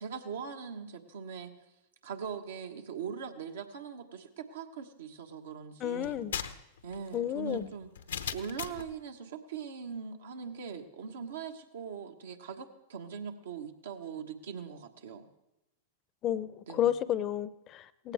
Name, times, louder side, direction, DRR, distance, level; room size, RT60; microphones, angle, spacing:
voice 1, 0.0-1.5 2.0-6.2 6.8-15.3 16.7-16.9, right 6 dB, 75° right, 4 dB, 1.4 m, -41 dB
voice 2, 5.8-6.3 7.1-7.7 16.2-18.1, left 11 dB, 35° left, 17 dB, 0.6 m, -31 dB
sound 1, 6.0-8.9, left 8 dB, 80° left, 0.8 m, -39 dB
18.0 x 15.5 x 3.5 m, 0.90 s
hypercardioid pair, 100°, 0 cm